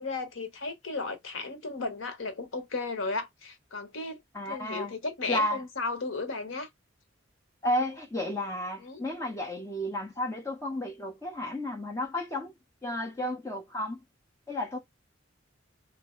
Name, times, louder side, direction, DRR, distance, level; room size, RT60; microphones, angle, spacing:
voice 1, 0.0-4.2 4.5-6.7 8.8-9.0, left 3 dB, 80° left, 0.9 m, -34 dB
voice 2, 4.3-4.9 5.3-5.6 7.6-12.5 12.8-14.0 14.5-14.8, left 1 dB, 15° left, 0.9 m, -32 dB
2.9 x 2.7 x 3.1 m
head